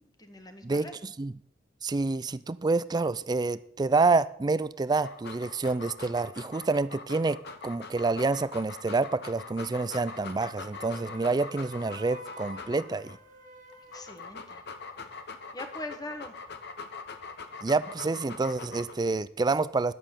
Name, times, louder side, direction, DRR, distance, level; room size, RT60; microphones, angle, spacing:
voice 1, 0.0-0.9 13.9-14.6 15.5-16.3, left 2 dB, 20° left, 7 dB, 1.3 m, -41 dB
voice 2, 0.6-1.3 1.8-13.2 17.6-19.9, right 3 dB, 20° right, 16 dB, 0.4 m, -28 dB
Dog, 4.9-13.1 13.7-19.1, left 4 dB, 60° left, 1.1 m, -43 dB
Wind instrument woodwind instrument, 10.8-14.2, left 1 dB, 40° right, 1.7 m, -48 dB
11.0 x 7.6 x 6.7 m, 0.69 s
head